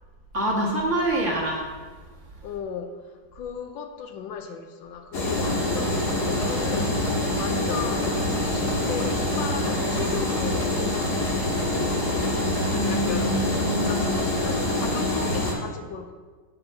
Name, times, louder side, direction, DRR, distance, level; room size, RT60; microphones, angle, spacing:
voice 1, 0.3-1.7 6.7-7.0 12.7-14.0, right 1 dB, 40° right, -2 dB, 1.6 m, -26 dB
voice 2, 2.4-7.0 7.4-11.2 11.7-12.0 12.9-13.3 13.7-16.1, left 7 dB, 75° left, 7 dB, 1.4 m, -36 dB
sound 1, 5.1-15.5, left 1 dB, 55° left, 2.0 m, -25 dB
10.0 x 3.9 x 6.9 m, 1.4 s
omnidirectional pair, 2.1 m